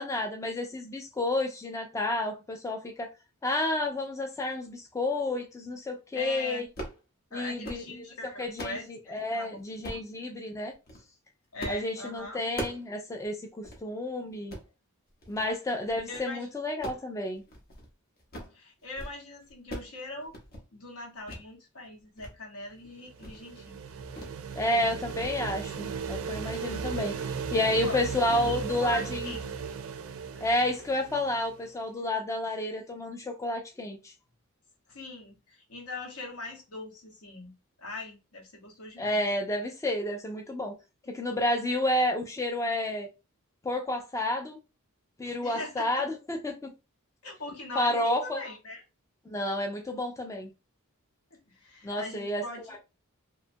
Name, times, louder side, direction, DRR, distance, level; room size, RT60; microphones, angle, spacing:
voice 1, 0.0-3.1 3.4-6.6 7.3-7.8 8.4-10.7 11.7-14.5 15.3-17.4 24.6-29.3 30.4-34.1 39.0-40.7 41.1-43.1 43.6-44.6 45.2-46.7 47.8-48.4 49.3-50.5 51.8-52.4 52.7-52.8, left 1 dB, 15° left, 0.3 m, -30 dB
voice 2, 6.1-6.7 7.3-9.6 9.9-10.0 11.5-12.4 16.1-16.5 18.5-20.3 20.7-23.8 24.7-25.0 27.8-29.5 34.9-37.5 37.8-39.2 45.4-46.0 47.2-48.8 51.3-52.8, left 2 dB, 75° left, 1.0 m, -41 dB
sound 1, 6.6-7.0 7.4-7.9 8.3-8.8 9.8-10.1 10.7-11.0 11.6-11.9 12.2-12.9 13.2-13.3 13.6-13.8 14.3-14.7 15.2-15.5 15.8-16.3 16.7-17.9 18.2-18.6 18.8-19.2 19.4-20.0 20.2-20.6 21.3-21.4 21.8-22.3 22.7-22.8 23.2-23.4 24.2-24.4 24.7-24.9 25.2-25.4, equal, 45° left, 0.8 m, -41 dB
sound 2, 22.9-31.7, right 6 dB, 65° right, 0.3 m, -36 dB
2.8 x 2.2 x 2.6 m
head